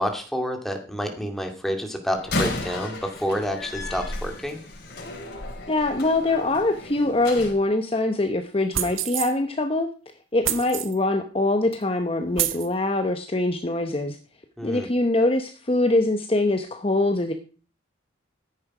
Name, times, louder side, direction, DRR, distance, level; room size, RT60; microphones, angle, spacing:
voice 1, 0.0-4.6 14.6-14.9, equal, ahead, 3 dB, 2.3 m, -29 dB
Slam, 2.2-7.6, left 2 dB, 55° left, 4.4 m, -33 dB
voice 2, 5.7-9.9 10.3-14.2 14.6-17.3, left 2 dB, 30° left, 6 dB, 0.9 m, -23 dB
sound 1, 8.7-9.3 10.4-11.0 11.7-11.8 12.3-12.7, right 12 dB, 85° right, 1.1 m, -27 dB
14.0 x 10.0 x 4.9 m, 0.38 s
head